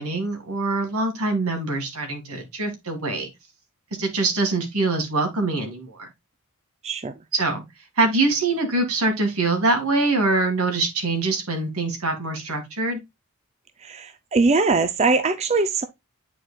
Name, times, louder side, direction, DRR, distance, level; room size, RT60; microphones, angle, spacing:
voice 1, 0.0-3.3 4.0-6.1 7.3-7.6 8.0-13.0, right 3 dB, 85° right, 2.1 m, -24 dB
voice 2, 6.8-7.1 13.8-15.8, right 3 dB, 30° right, 0.5 m, -21 dB
9.1 x 4.6 x 2.3 m
head